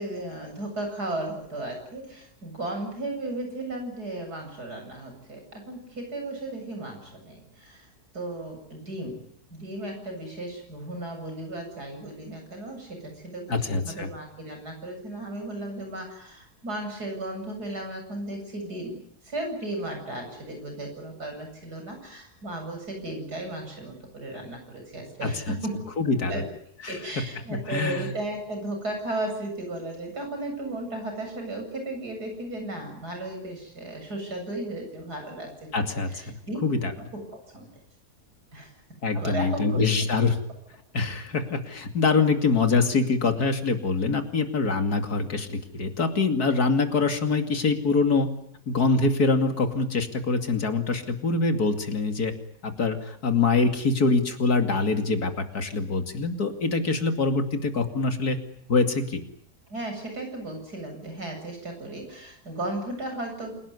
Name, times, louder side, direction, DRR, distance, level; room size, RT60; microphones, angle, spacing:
voice 1, 0.0-7.9 8.1-9.2 9.5-19.0 19.2-25.8 26.3-26.5 26.9-36.6 37.0-37.1 37.5-37.8 38.5-40.1 59.7-63.7, right 1 dB, 80° right, 4 dB, 8.4 m, -35 dB
voice 2, 13.5-14.1 25.2-25.5 26.0-26.4 26.8-26.9 27.5-28.1 35.7-36.4 36.6-36.9 39.0-40.4 40.9-48.3 48.7-52.3 52.6-58.4 58.7-59.3, left 4 dB, 75° left, 6 dB, 3.0 m, -24 dB
28.0 x 18.0 x 9.7 m, 0.70 s
omnidirectional pair, 1.7 m